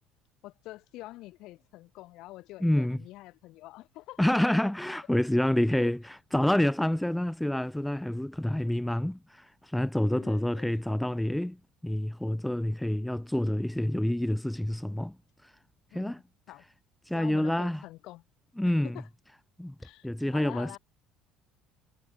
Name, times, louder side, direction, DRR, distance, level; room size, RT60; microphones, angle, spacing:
voice 1, 0.4-4.2 5.7-5.9 10.1-10.8 15.9-16.2 16.5-16.7 17.1-18.2 18.6-19.1 19.8-20.8, left 18 dB, 65° left, 7.6 m, -46 dB
voice 2, 2.6-3.0 4.2-11.6 11.8-15.2 15.4-15.5 15.9-16.2 17.1-17.8 18.6-19.0 19.6-19.7 20.0-20.8, left 1 dB, 5° left, 1.0 m, -28 dB
hypercardioid pair, 70°, 0 cm